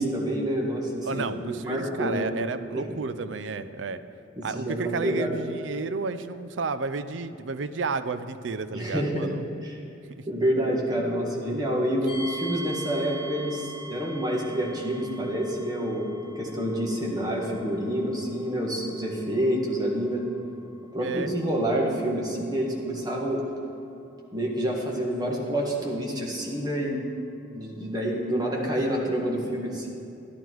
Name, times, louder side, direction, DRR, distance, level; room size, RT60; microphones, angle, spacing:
voice 1, 0.0-2.3 2.7-3.0 4.4-5.3 8.7-9.3 9.6-9.8 10.3-20.2 20.9-23.4 24.3-27.1 27.5-29.9, equal, 20° right, -2 dB, 1.8 m, -28 dB
voice 2, 1.0-4.0 4.4-9.4 10.2-10.3 12.0-12.2 21.0-21.3, right 4 dB, 85° right, 12 dB, 0.5 m, -32 dB
sound 1, 12.1-26.9, equal, 25° left, 2.3 m, -44 dB
12.0 x 11.0 x 4.6 m, 2.8 s
head